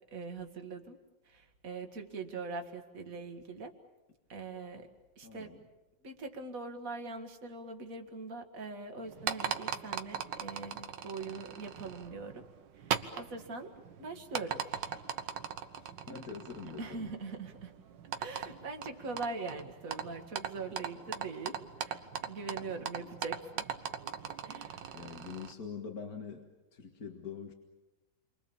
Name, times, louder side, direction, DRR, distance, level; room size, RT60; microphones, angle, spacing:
voice 1, 0.1-1.0 1.3-3.7 4.3-4.9 5.2-5.5 6.0-12.4 12.8-14.6 16.8-17.7 18.2-23.6 24.4-25.0, right 3 dB, 45° right, 5 dB, 2.3 m, -42 dB
voice 2, 5.2-5.6 15.8-17.2 24.9-27.5, left 6 dB, 55° left, 2 dB, 2.2 m, -44 dB
sound 1, 9.0-25.5, right 8 dB, 75° right, 1.8 m, -40 dB
29.0 x 24.5 x 7.2 m, 1.1 s
omnidirectional pair, 2.0 m